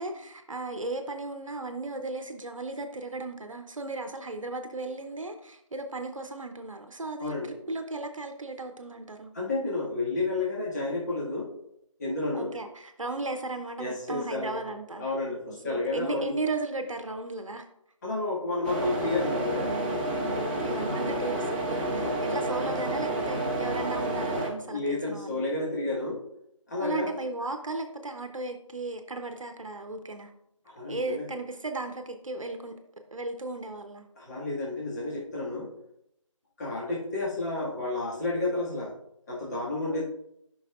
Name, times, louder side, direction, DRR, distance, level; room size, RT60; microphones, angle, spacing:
voice 1, 0.0-9.3 12.3-15.1 15.5-17.7 20.3-25.4 26.8-30.3 30.9-32.8 33.1-34.1 39.8-40.0, right 2 dB, 75° right, 6 dB, 0.8 m, -36 dB
voice 2, 7.2-7.5 9.3-11.5 12.0-12.5 13.8-14.6 15.0-16.4 18.0-19.7 22.0-22.4 24.7-26.2 26.7-27.1 30.7-31.3 34.2-35.7 36.6-39.0 39.3-40.0, left 2 dB, 35° left, -6 dB, 1.9 m, -31 dB
sound 1, 18.6-24.5, right 1 dB, 15° right, 0.8 m, -29 dB
10.5 x 5.6 x 2.4 m, 0.78 s
figure-of-eight pair, 160°, 17 cm